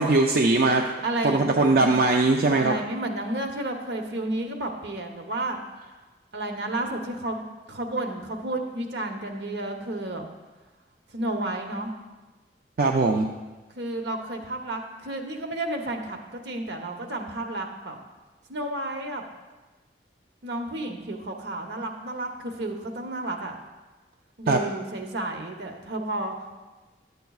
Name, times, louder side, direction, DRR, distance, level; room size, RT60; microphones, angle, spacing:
voice 1, 0.0-0.9 1.2-2.8 12.8-13.3 24.5-24.6, right 3 dB, 55° right, 1 dB, 0.4 m, -20 dB
voice 2, 1.0-2.0 2.5-5.6 6.3-10.2 11.1-11.9 13.8-18.0 18.5-19.3 20.4-23.5 24.4-26.6, right 1 dB, 75° right, 4 dB, 0.9 m, -32 dB
11.5 x 8.0 x 2.4 m, 1.2 s
head